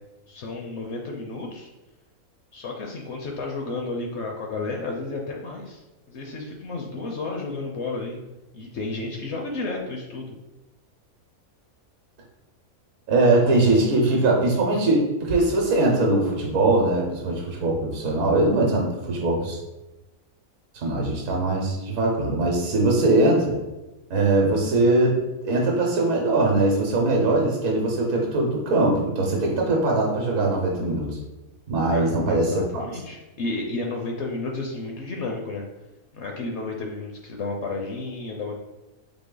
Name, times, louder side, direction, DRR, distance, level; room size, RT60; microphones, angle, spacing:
voice 1, 0.3-1.7 2.5-8.2 8.5-10.3 31.9-35.7 36.1-38.5, left 3 dB, 60° left, 1 dB, 0.8 m, -32 dB
voice 2, 13.1-19.6 20.7-23.6 24.1-31.1 31.7-32.8, right 2 dB, 65° right, -1 dB, 1.2 m, -21 dB
4.0 x 3.0 x 3.8 m, 1.0 s
omnidirectional pair, 1.5 m